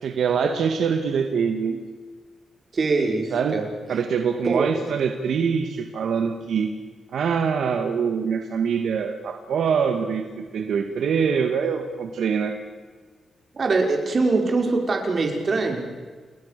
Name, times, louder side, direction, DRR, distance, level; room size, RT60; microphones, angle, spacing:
voice 1, 0.0-1.8 3.3-3.5 3.9-6.7 7.1-12.6, right 6 dB, 80° right, 5 dB, 2.2 m, -24 dB
voice 2, 2.7-3.7 4.4-4.7 13.5-15.8, right 3 dB, 45° right, 2 dB, 5.7 m, -23 dB
29.5 x 21.0 x 7.0 m, 1.5 s
cardioid pair, 95°, 0 cm